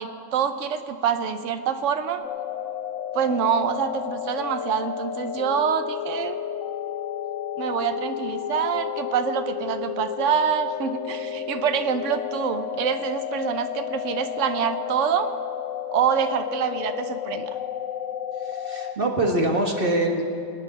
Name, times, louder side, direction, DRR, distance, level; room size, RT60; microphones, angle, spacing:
voice 1, 0.0-2.2 3.1-6.4 7.6-15.3 15.9-17.5, right 7 dB, 60° right, 8 dB, 1.1 m, -26 dB
sound 1, 2.2-19.0, left 9 dB, 70° left, 0.9 m, -32 dB
voice 2, 18.4-20.2, right 1 dB, 40° right, 1 dB, 1.6 m, -24 dB
25.0 x 9.4 x 4.2 m, 2.8 s
omnidirectional pair, 1.5 m